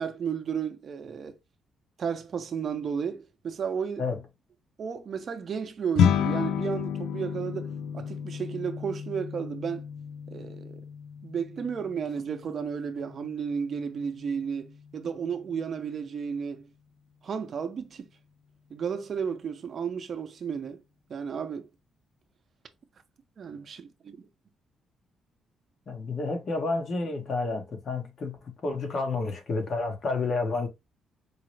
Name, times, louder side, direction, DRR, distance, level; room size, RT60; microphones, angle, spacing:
voice 1, 0.0-1.4 2.0-4.0 4.8-9.9 10.3-10.9 11.2-14.7 14.9-16.7 17.2-18.1 18.7-20.8 21.1-21.7 23.4-24.3, right 7 dB, 50° right, 0.6 m, -33 dB
sound 1, 6.0-15.4, left 8 dB, 85° left, 0.3 m, -32 dB
voice 2, 25.9-30.7, left 3 dB, 50° left, 1.1 m, -30 dB
4.7 x 2.0 x 3.2 m
cardioid pair, 90°, 0 cm